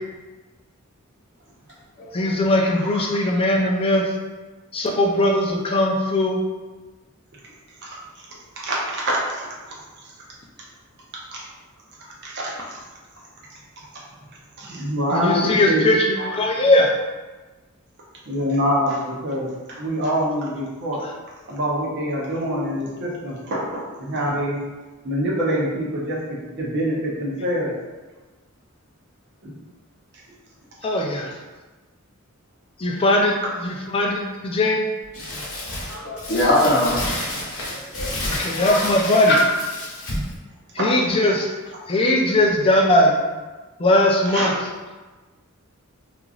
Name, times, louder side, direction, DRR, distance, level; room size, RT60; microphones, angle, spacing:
voice 1, 2.1-4.0 4.7-6.4 15.1-16.9 30.8-31.3 32.8-34.8 38.2-39.3 40.7-41.5 41.9-43.2 43.8-44.5, left 1 dB, 25° left, 0 dB, 0.4 m, -19 dB
voice 2, 8.6-9.5 10.0-10.1 11.3-11.4 12.2-12.8 14.6-15.8 16.2-16.3 18.3-21.0 21.5-24.6 25.0-27.7 29.4-29.5 33.4-33.5 40.8-40.9 41.2-41.3 44.2-44.5, equal, 55° right, -4 dB, 0.6 m, -25 dB
Crumpling crinkling, 35.1-40.3, left 1 dB, 75° left, 1.0 m, -30 dB
voice 3, 35.9-37.0 37.3-37.4 37.6-38.1 38.5-38.9, left 1 dB, 50° left, -5 dB, 0.8 m, -22 dB
3.0 x 2.4 x 2.4 m, 1.2 s
head